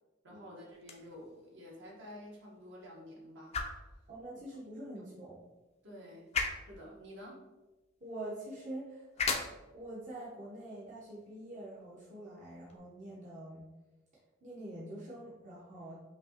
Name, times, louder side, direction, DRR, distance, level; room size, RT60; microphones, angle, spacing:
voice 1, 0.2-4.0 5.8-6.3 6.7-7.4, equal, 60° right, -3 dB, 1.3 m, -50 dB
sound 1, 0.7-12.8, left 4 dB, 30° left, 0.4 m, -42 dB
voice 2, 4.1-5.4 8.0-13.6 14.4-16.0, right 1 dB, 40° right, -7 dB, 0.8 m, -45 dB
5.2 x 2.8 x 2.8 m, 1.1 s
head